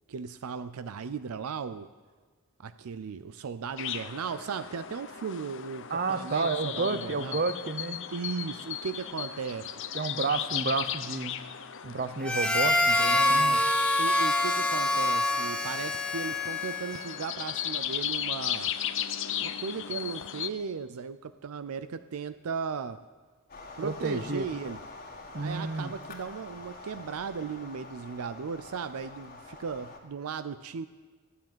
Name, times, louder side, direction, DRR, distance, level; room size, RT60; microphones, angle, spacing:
voice 1, 0.1-1.9 2.6-7.4 8.1-9.7 13.1-13.6 14.0-18.7 19.4-23.0 23.8-24.8 25.3-30.9, right 6 dB, 75° right, 12 dB, 0.5 m, -36 dB
sound 1, 3.8-20.5, left 10 dB, 55° left, 0.7 m, -36 dB
voice 2, 5.9-8.0 9.9-11.4 11.8-13.6 23.8-24.5 25.3-25.9, right 4 dB, 45° right, 11 dB, 0.7 m, -31 dB
Harmonica, 12.2-17.2, left 2 dB, 5° left, 0.8 m, -26 dB
sound 2, 23.5-30.0, left 3 dB, 40° left, 2.0 m, -46 dB
15.0 x 7.4 x 9.2 m, 1.5 s
head